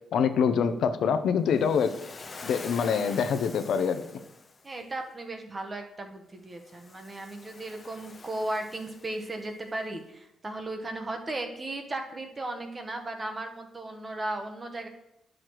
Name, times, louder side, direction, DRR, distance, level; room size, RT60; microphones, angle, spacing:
voice 1, 0.1-1.9 2.4-4.0, left 6 dB, 65° left, 9 dB, 0.5 m, -25 dB
Waves surf, 1.5-4.7 6.5-9.6, left 4 dB, 30° left, 0.6 m, -46 dB
voice 2, 4.6-14.9, right 2 dB, 20° right, 5 dB, 0.8 m, -36 dB
10.5 x 6.3 x 3.0 m, 0.84 s
cardioid pair, 150°, 0 cm